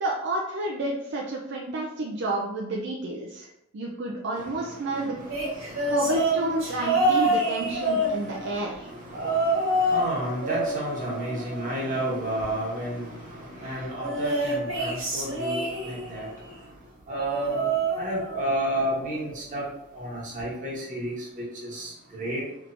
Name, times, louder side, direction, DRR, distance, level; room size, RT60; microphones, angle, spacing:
voice 1, 0.0-3.5 3.7-5.1 5.9-8.9, right 2 dB, 60° right, -1 dB, 0.4 m, -30 dB
sound 1, 5.3-8.6 9.1-10.1 10.4-12.0 14.0-16.2 17.1-18.6 18.9-19.3 20.4-20.5, right 1 dB, 75° right, 1.3 m, -27 dB
voice 2, 8.8-13.2 13.6-16.3 17.1-17.7 18.0-19.6 19.9-21.2 21.7-21.9 22.2-22.4, right 1 dB, 40° right, -4 dB, 1.2 m, -31 dB
3.3 x 3.1 x 2.5 m, 0.81 s
head